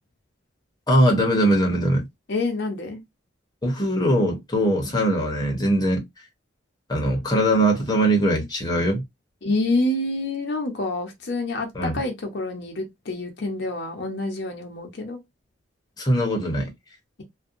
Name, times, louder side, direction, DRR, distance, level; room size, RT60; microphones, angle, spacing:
voice 1, 0.9-2.1 3.6-6.0 6.9-9.0 11.7-12.0 16.0-16.7, right 1 dB, 20° left, 0.8 m, -21 dB
voice 2, 2.3-3.0 9.4-15.2, left 2 dB, 65° left, 0.7 m, -27 dB
2.6 x 2.2 x 2.5 m
head